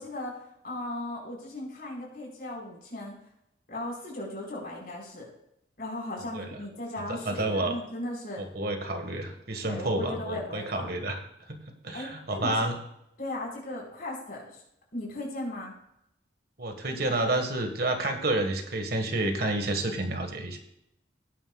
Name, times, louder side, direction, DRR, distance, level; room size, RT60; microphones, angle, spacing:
voice 1, 0.0-3.1 3.7-5.3 5.8-8.4 9.6-11.0 11.9-12.7 13.2-14.6 14.9-15.7, left 1 dB, 50° left, -2 dB, 4.8 m, -37 dB
voice 2, 7.1-7.7 8.4-11.2 11.5-11.6 11.8-12.7 16.6-20.6, right 2 dB, 55° right, 5 dB, 1.6 m, -29 dB
18.0 x 9.5 x 2.4 m, 0.79 s
head